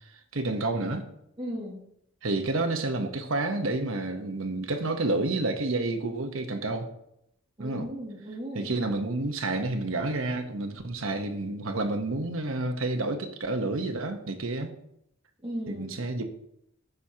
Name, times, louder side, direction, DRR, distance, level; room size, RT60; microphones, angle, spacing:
voice 1, 0.3-1.1 2.2-6.9 7.6-7.9 8.5-14.7 15.7-16.2, right 2 dB, 80° right, 1.0 m, -29 dB
voice 2, 1.4-1.8 7.6-8.8 15.4-16.0, equal, 25° right, 2.3 m, -36 dB
14.5 x 5.9 x 2.8 m
head